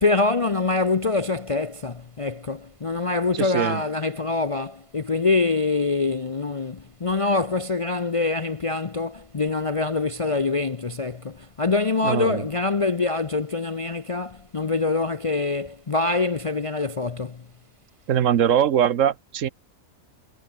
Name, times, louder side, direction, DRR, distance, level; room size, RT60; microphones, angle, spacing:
voice 1, 0.0-17.4, left 3 dB, 35° left, 0.5 m, -25 dB
voice 2, 3.4-3.8 12.0-12.4 18.1-19.5, right 9 dB, 65° right, 1.2 m, -21 dB
omnidirectional pair, 1.5 m